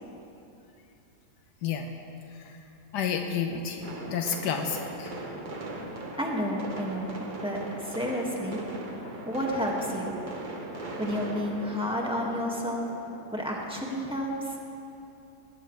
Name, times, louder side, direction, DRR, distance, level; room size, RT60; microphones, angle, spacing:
voice 1, 2.9-5.2 9.0-9.1, left 7 dB, 90° left, 4 dB, 1.5 m, -31 dB
sound 1, 3.8-13.3, right 2 dB, 30° right, 1.5 m, -39 dB
voice 2, 6.2-7.1 7.4-8.6 9.3-10.2 11.0-12.9 13.3-14.6, equal, 5° right, -3 dB, 2.0 m, -31 dB
19.0 x 19.0 x 3.4 m, 2.7 s
omnidirectional pair, 1.8 m